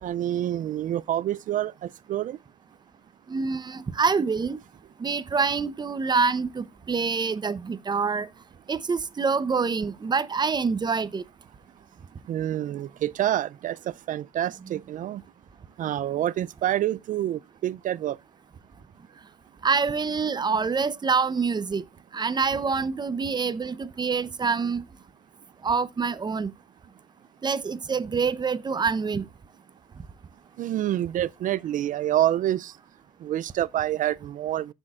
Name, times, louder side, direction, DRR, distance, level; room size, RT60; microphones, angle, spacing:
voice 1, 0.0-2.4 12.3-15.2 15.8-18.2 30.6-32.8 33.2-34.7, right 12 dB, 50° right, 0.4 m, -27 dB
voice 2, 3.3-4.6 5.0-8.3 8.7-11.2 19.6-21.8 22.1-24.8 25.6-26.5 27.4-29.2, right 5 dB, 25° right, 0.7 m, -26 dB
15.0 x 6.3 x 2.4 m
cardioid pair, 110°, 17 cm